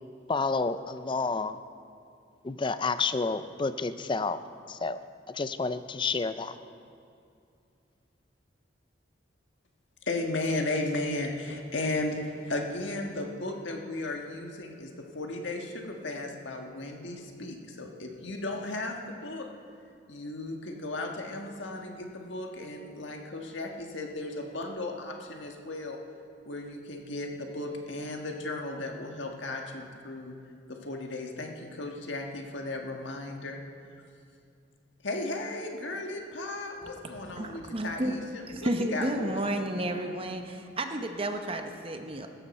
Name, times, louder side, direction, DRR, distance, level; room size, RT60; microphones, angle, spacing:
voice 1, 0.3-1.6 2.4-4.4 4.7-5.0 5.3-6.5, left 4 dB, 25° left, 12 dB, 0.4 m, -30 dB
voice 2, 10.1-19.5 20.1-26.0 26.4-30.3 30.7-33.6 35.0-39.4 39.7-39.9, left 2 dB, 70° left, 2 dB, 1.5 m, -35 dB
voice 3, 36.8-38.2 38.5-42.3, right 1 dB, 30° right, 5 dB, 0.8 m, -32 dB
15.5 x 13.5 x 4.3 m, 2.4 s
head